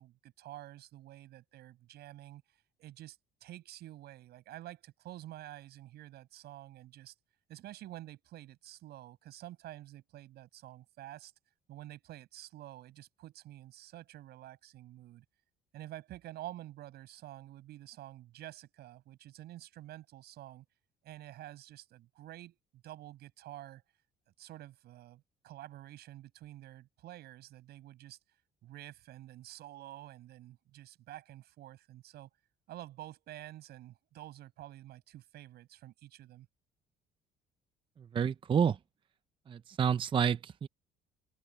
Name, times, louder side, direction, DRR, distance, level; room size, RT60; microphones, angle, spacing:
voice 1, 0.0-7.1 7.5-11.3 11.7-15.2 15.7-20.6 21.0-23.8 24.4-28.2 28.6-32.3 32.7-36.5, right 14 dB, 75° right, 7.7 m, -49 dB
voice 2, 38.1-38.8 39.5-40.7, right 7 dB, 30° right, 0.5 m, -29 dB
cardioid pair, 110°, 17 cm